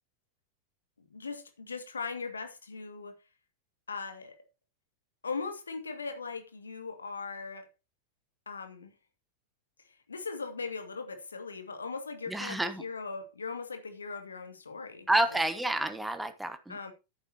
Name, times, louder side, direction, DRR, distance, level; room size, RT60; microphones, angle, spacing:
voice 1, 1.1-3.2 3.9-4.4 5.2-7.7 8.5-8.9 9.9-15.4 16.7-16.9, left 4 dB, 75° left, 2.1 m, -39 dB
voice 2, 12.3-12.8 15.1-16.8, right 1 dB, 5° right, 1.3 m, -29 dB
11.0 x 9.4 x 2.8 m
figure-of-eight pair, 90°, 0 cm